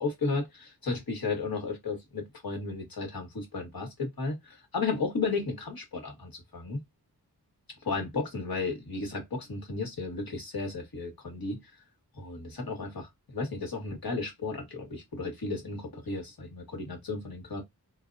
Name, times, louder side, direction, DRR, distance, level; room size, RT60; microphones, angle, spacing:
voice 1, 0.0-6.8 7.8-11.6 12.1-17.6, left 3 dB, 65° left, 1.5 m, -34 dB
3.9 x 2.0 x 2.5 m
wide cardioid pair, 60°, 39 cm